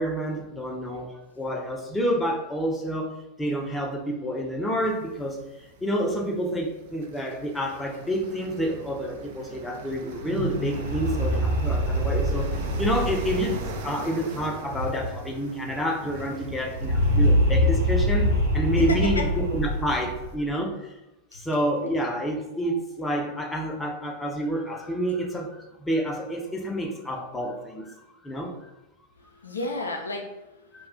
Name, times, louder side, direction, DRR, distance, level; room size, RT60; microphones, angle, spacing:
voice 1, 0.0-20.9 21.3-28.7 30.7-30.9, equal, 10° left, 0 dB, 0.5 m, -29 dB
sound 1, 4.8-20.4, right 5 dB, 50° right, 0.3 m, -43 dB
sound 2, 10.1-15.4 15.7-15.8 16.0-20.4, equal, 85° right, 0.7 m, -25 dB
voice 2, 18.8-19.3 21.3-21.4 29.2-30.9, left 2 dB, 75° left, 2 dB, 0.4 m, -32 dB
2.3 x 2.1 x 3.6 m, 0.93 s
figure-of-eight pair, 90°, 0 cm